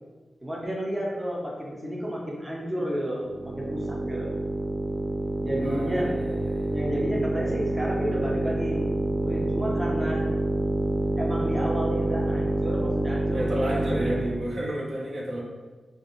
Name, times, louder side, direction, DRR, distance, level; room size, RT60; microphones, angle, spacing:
voice 1, 0.4-4.4 5.4-6.1 6.7-10.3 11.2-13.7, equal, 15° right, -3 dB, 0.7 m, -31 dB
sound 1, 3.3-14.5, right 2 dB, 40° right, 0.3 m, -27 dB
voice 2, 5.6-6.7 13.3-15.4, right 1 dB, 60° right, -3 dB, 0.8 m, -31 dB
4.7 x 2.4 x 3.1 m, 1.3 s
wide cardioid pair, 105°, 0 cm